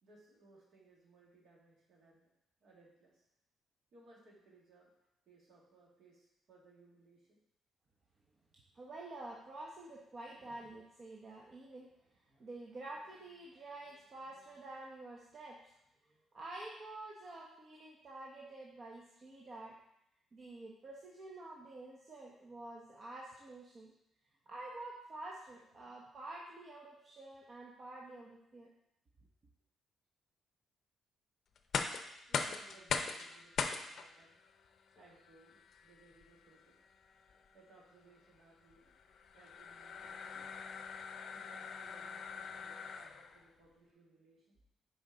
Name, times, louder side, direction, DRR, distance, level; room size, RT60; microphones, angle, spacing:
voice 1, 0.0-2.3 2.6-3.2 3.9-4.9 5.3-7.4 32.2-34.4 35.0-36.7 37.5-38.9 39.3-40.5 41.3-44.6, right 2 dB, 65° right, -3 dB, 1.9 m, -64 dB
voice 2, 8.7-15.6 16.3-19.8 20.3-23.9 24.5-28.7, right 2 dB, 45° right, -3 dB, 0.9 m, -49 dB
sound 1, 31.6-43.4, left 5 dB, 60° left, 0.5 m, -42 dB
6.2 x 4.4 x 3.9 m, 0.80 s
cardioid pair, 90°, 0 cm